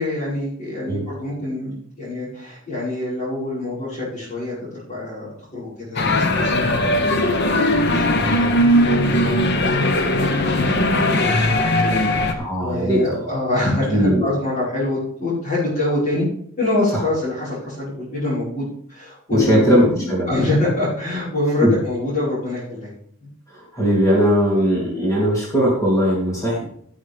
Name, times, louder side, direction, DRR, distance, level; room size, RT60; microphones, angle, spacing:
voice 1, 0.0-5.3 5.5-16.3 16.6-22.9 23.2-23.3, left 1 dB, 40° left, -10 dB, 5.2 m, -26 dB
sound 1, 6.0-12.3, left 1 dB, 55° left, 1.1 m, -19 dB
voice 2, 12.4-13.2 13.9-14.2 16.9-17.0 19.3-20.3 21.6-21.7 23.5-26.6, equal, 15° left, -5 dB, 3.2 m, -19 dB
15.5 x 7.3 x 3.6 m, 0.64 s
head